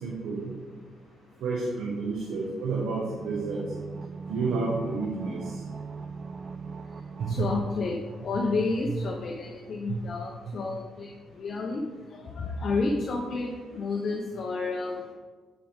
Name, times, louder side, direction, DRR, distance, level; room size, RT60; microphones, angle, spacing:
voice 1, 0.0-0.5 1.4-3.6 4.3-5.6 7.2-7.5 9.9-10.0, right 4 dB, 80° right, -5 dB, 1.4 m, -30 dB
sound 1, 3.1-8.8 9.0-9.1, right 5 dB, 40° right, 0.3 m, -40 dB
voice 2, 6.3-15.1, left 3 dB, 55° left, 2 dB, 0.7 m, -31 dB
9.0 x 5.0 x 3.5 m, 1.5 s
cardioid pair, 90°, 0 cm